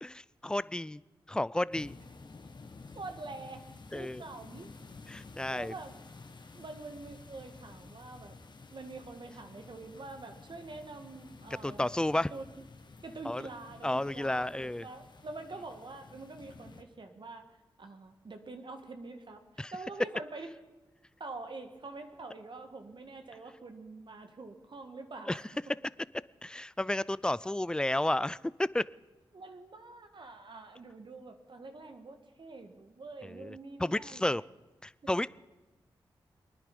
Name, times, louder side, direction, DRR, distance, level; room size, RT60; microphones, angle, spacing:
voice 1, 0.0-1.0 1.3-1.9 3.9-4.2 5.1-5.7 11.6-12.3 13.2-13.5 13.8-14.9 19.6-19.7 25.3-25.4 26.4-28.8 33.2-34.4 34.8-35.3, left 1 dB, 10° left, 20 dB, 0.4 m, -32 dB
sound 1, 1.7-16.8, left 3 dB, 50° left, 1.3 m, -52 dB
voice 2, 2.9-3.6 3.9-4.7 5.5-5.9 6.5-8.4 8.7-11.9 12.3-12.4 13.0-17.5 17.8-20.5 21.2-25.4 29.3-34.2 35.0-35.1, right 3 dB, 55° right, 6 dB, 1.6 m, -46 dB
23.0 x 10.0 x 5.3 m, 1.1 s
cardioid pair, 40°, 10 cm